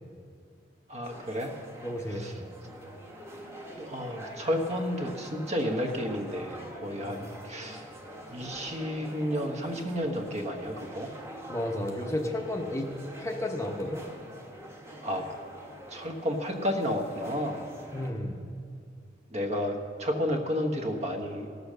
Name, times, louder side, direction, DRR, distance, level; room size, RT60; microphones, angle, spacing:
voice 1, 0.9-1.5 2.2-2.3 3.8-7.8 8.3-11.1 15.0-15.2 15.9-17.7 19.3-21.5, equal, 35° right, 3 dB, 1.2 m, -31 dB
sound 1, 1.0-18.1, equal, 15° right, 1.4 m, -45 dB
voice 2, 1.8-2.5 7.0-7.2 11.5-14.0 17.9-18.4, left 1 dB, 15° left, 3 dB, 0.8 m, -33 dB
17.5 x 6.9 x 6.6 m, 2.2 s
head